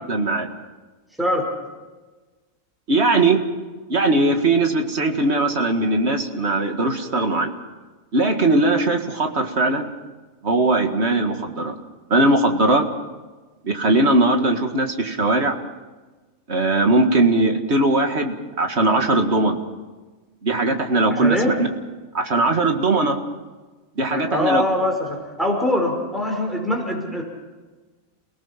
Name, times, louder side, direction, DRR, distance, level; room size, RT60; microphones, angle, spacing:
voice 1, 0.1-0.5 2.9-3.4 3.9-7.5 8.1-9.9 10.4-11.8 12.1-12.9 13.6-15.6 16.5-19.6 20.4-21.7 22.1-23.2 24.0-24.6, right 2 dB, 55° right, 5 dB, 2.1 m, -19 dB
voice 2, 21.1-21.6 24.1-27.2, left 1 dB, ahead, 1 dB, 5.0 m, -23 dB
29.0 x 18.5 x 5.8 m, 1.3 s
omnidirectional pair, 1.4 m